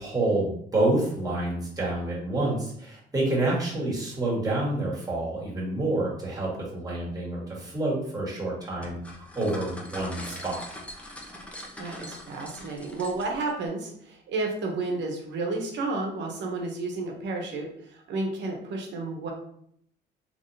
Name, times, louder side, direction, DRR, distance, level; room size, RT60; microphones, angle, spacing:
voice 1, 0.0-10.6, right 2 dB, 20° right, -5 dB, 1.5 m, -28 dB
sound 1, 8.8-13.5, left 1 dB, 5° left, 0.7 m, -42 dB
voice 2, 11.8-19.3, right 3 dB, 75° right, 1 dB, 0.9 m, -31 dB
3.5 x 3.1 x 2.7 m, 0.67 s
cardioid pair, 105°, 18 cm